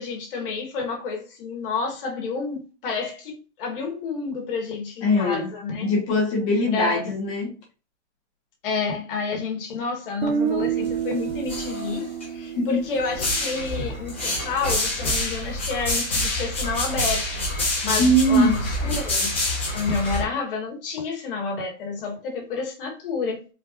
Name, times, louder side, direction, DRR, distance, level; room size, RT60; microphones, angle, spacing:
voice 1, 0.0-5.9 6.7-7.1 8.6-17.5 17.8-19.3 19.7-23.5, left 4 dB, 50° left, 1.8 m, -29 dB
voice 2, 5.0-5.5 5.8-7.5 12.5-12.8 18.0-18.5, equal, 25° left, 1.3 m, -21 dB
Guitar, 10.2-14.2, right 7 dB, 60° right, 0.9 m, -29 dB
sound 1, 10.6-11.0 11.3-12.3 13.0-20.2, left 1 dB, 10° left, 0.3 m, -27 dB
4.4 x 3.4 x 2.5 m
hypercardioid pair, 165°, 36 cm